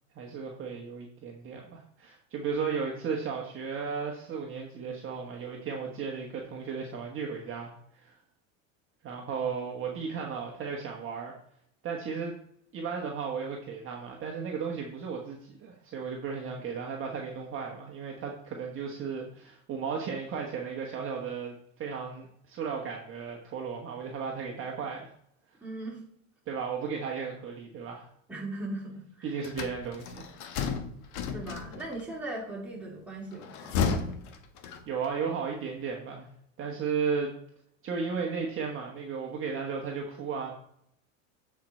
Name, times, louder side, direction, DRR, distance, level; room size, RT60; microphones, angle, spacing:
voice 1, 0.1-8.2 9.0-11.3 11.8-12.3 12.7-25.1 26.5-28.1 29.2-30.3 34.9-36.3 36.6-37.3 37.8-40.5, right 5 dB, 30° right, 0 dB, 1.4 m, -35 dB
voice 2, 25.6-26.0 28.3-29.4 31.3-34.0, right 2 dB, 5° right, -5 dB, 3.6 m, -39 dB
sound 1, 29.4-32.0 33.3-35.1, left 6 dB, 55° left, 1.3 m, -33 dB
8.7 x 4.8 x 4.4 m, 0.68 s
supercardioid pair, 120°, 39 cm